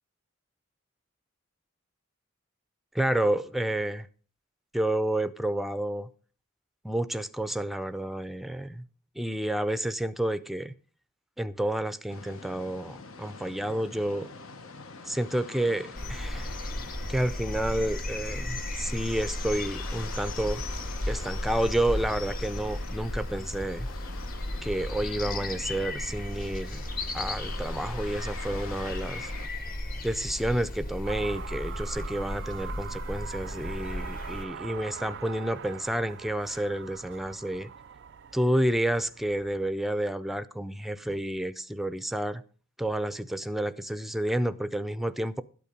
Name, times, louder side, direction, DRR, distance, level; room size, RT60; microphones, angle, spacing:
voice 1, 2.9-4.1 4.7-6.1 6.8-8.9 9.2-10.7 11.4-14.3 15.1-16.5 17.1-20.6 21.1-23.9 24.6-26.8 27.1-29.3 30.0-37.7 38.3-42.4 42.8-45.4, right 1 dB, ahead, 0.4 m, -30 dB
sound 1, 12.1-29.5, left 4 dB, 80° left, 1.1 m, -45 dB
sound 2, 16.0-34.5, left 1 dB, 45° left, 1.5 m, -35 dB
sound 3, 31.0-39.7, right 7 dB, 60° right, 0.4 m, -43 dB
12.5 x 8.5 x 5.3 m
head